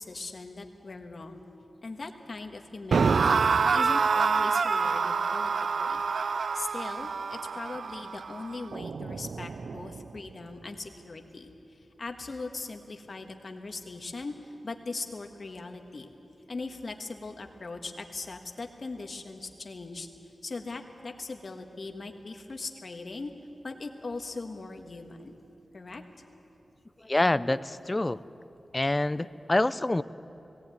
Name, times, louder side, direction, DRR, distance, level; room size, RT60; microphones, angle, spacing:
voice 1, 0.0-1.4 1.8-3.5 3.7-5.5 5.8-6.0 6.5-16.1 16.5-20.1 20.4-23.3 23.6-25.3 25.7-26.0, left 3 dB, 45° left, 5 dB, 1.4 m, -40 dB
sound 1, 2.9-10.0, right 5 dB, 70° right, 0.4 m, -27 dB
voice 2, 27.0-28.2 28.7-30.0, left 2 dB, 20° left, 16 dB, 0.4 m, -26 dB
18.5 x 17.5 x 9.1 m, 2.9 s
wide cardioid pair, 140°, 0 cm